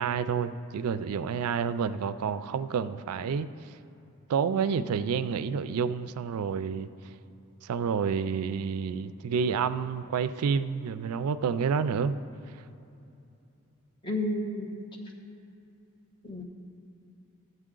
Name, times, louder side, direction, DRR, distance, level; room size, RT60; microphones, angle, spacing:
voice 1, 0.0-3.5 4.3-6.9 7.6-12.2, right 6 dB, 85° right, 13 dB, 0.3 m, -29 dB
voice 2, 14.0-14.8 16.2-16.4, left 1 dB, 20° left, 0 dB, 1.1 m, -31 dB
13.0 x 7.8 x 3.8 m, 2.8 s
head